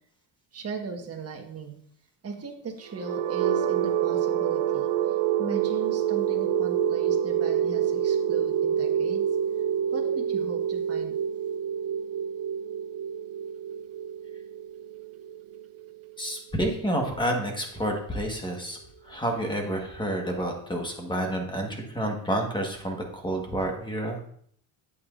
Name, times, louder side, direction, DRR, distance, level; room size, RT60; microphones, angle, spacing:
voice 1, 0.5-1.8 2.2-9.2 9.9-11.2, right 4 dB, 30° right, 2 dB, 1.4 m, -38 dB
sound 1, 2.9-16.8, right 9 dB, 65° right, 0.7 m, -27 dB
voice 2, 16.2-18.8 19.0-24.3, right 1 dB, 10° left, 2 dB, 1.4 m, -29 dB
8.3 x 8.3 x 2.5 m, 0.63 s
cardioid pair, 140°, 45 cm